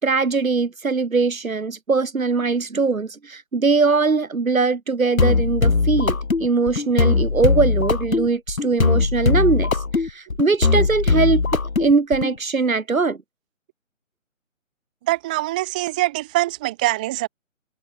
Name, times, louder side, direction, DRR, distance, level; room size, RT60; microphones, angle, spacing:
voice 1, 0.0-9.7 10.4-11.4 11.8-13.2, right 4 dB, 80° right, 5.1 m, -21 dB
sound 1, 5.2-12.3, left 4 dB, 85° left, 3.9 m, -20 dB
voice 2, 15.1-17.3, right 18 dB, 5° right, 0.7 m, -23 dB
hypercardioid pair, 160°, 40 cm